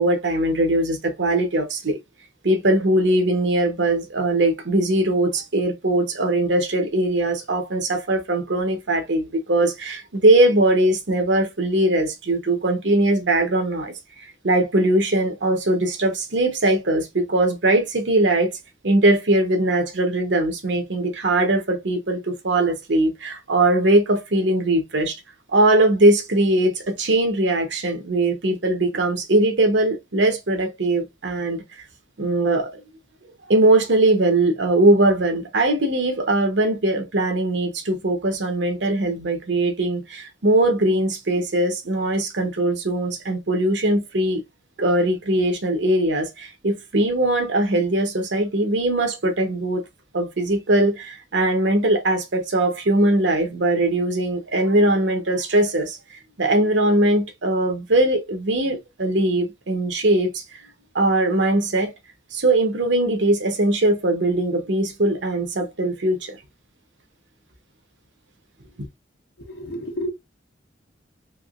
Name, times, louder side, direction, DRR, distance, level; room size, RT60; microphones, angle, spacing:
voice 1, 0.0-2.0 2.4-13.9 14.4-18.5 18.8-25.2 25.5-31.6 32.2-32.8 33.5-44.4 44.8-49.8 50.1-56.0 56.4-60.4 60.9-61.9 62.3-66.4, right 1 dB, 80° right, 1.0 m, -20 dB
voice 2, 69.4-70.1, equal, 60° left, 1.0 m, -30 dB
3.5 x 2.8 x 2.4 m
head